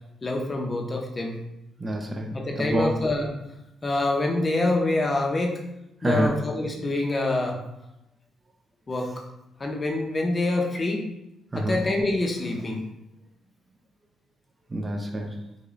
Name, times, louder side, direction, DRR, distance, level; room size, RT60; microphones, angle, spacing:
voice 1, 0.2-1.4 2.3-3.3 3.8-5.6 6.0-7.6 8.9-9.2 9.6-11.1 11.6-12.8, left 2 dB, 30° left, 1 dB, 0.6 m, -26 dB
voice 2, 1.8-2.9 6.0-6.3 11.5-11.8 14.7-15.4, right 1 dB, 25° right, 3 dB, 0.4 m, -27 dB
4.9 x 2.2 x 2.4 m, 0.86 s
cardioid pair, 90°, 0 cm